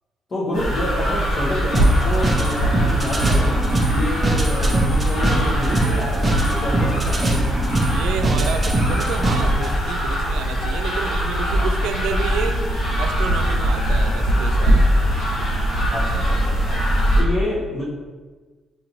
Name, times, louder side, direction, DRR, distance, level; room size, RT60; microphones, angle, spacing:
voice 1, 0.3-3.6 3.9-7.5 11.5-11.8 15.9-16.8 17.1-17.9, left 1 dB, 40° left, -7 dB, 1.0 m, -28 dB
sound 1, 0.5-17.2, equal, 70° left, 1.5 m, -21 dB
sound 2, 1.7-9.7, right 1 dB, 20° right, 0.7 m, -23 dB
voice 2, 7.9-12.6 13.0-14.9, right 6 dB, 85° right, 6 dB, 0.3 m, -30 dB
4.8 x 2.6 x 3.0 m, 1.3 s
cardioid pair, 90°, 0 cm